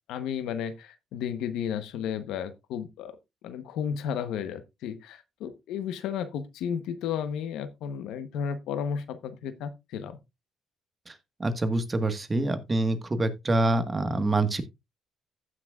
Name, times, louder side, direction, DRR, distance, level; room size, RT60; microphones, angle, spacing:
voice 1, 0.1-3.1 3.4-10.2, left 8 dB, 90° left, 0.9 m, -33 dB
voice 2, 11.4-14.6, right 2 dB, 25° right, 1.4 m, -26 dB
15.5 x 6.0 x 2.3 m
cardioid pair, 90°, 0 cm